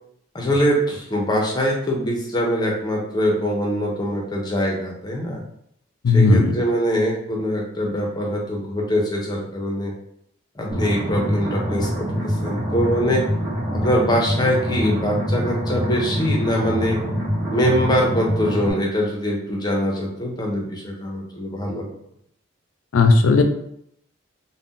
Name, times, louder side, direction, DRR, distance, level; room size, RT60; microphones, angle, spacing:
voice 1, 0.3-5.4 6.1-9.9 10.6-13.2 13.7-17.0 17.5-21.9, equal, 20° left, -1 dB, 0.5 m, -23 dB
voice 2, 6.0-6.5 22.9-23.4, left 3 dB, 90° left, 6 dB, 0.4 m, -14 dB
sound 1, 10.7-18.7, equal, 30° right, 1.0 m, -25 dB
2.5 x 2.0 x 3.6 m, 0.72 s
head